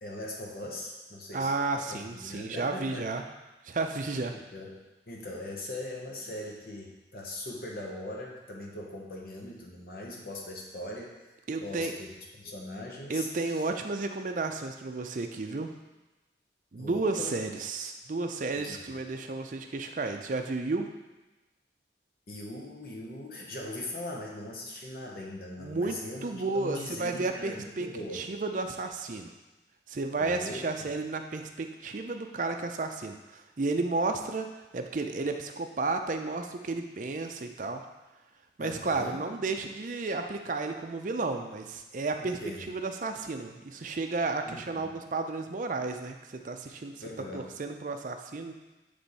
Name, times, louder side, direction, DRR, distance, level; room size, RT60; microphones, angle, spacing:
voice 1, 0.0-3.1 4.5-4.8 5.1-11.1 11.6-12.1 12.4-13.6 16.7-17.4 18.6-18.8 22.3-28.3 30.2-30.9 38.6-39.2 42.2-42.7 44.5-44.9 47.0-47.5, left 1 dB, 55° left, -2 dB, 0.9 m, -40 dB
voice 2, 1.3-3.2 3.6-4.3 11.5-11.9 13.1-15.7 16.7-20.9 25.6-27.9 28.1-29.3 29.9-34.5 34.7-37.8 38.6-42.4 42.7-46.9 47.3-48.5, right 3 dB, 45° right, 5 dB, 0.5 m, -32 dB
8.0 x 3.4 x 4.1 m, 1.1 s
head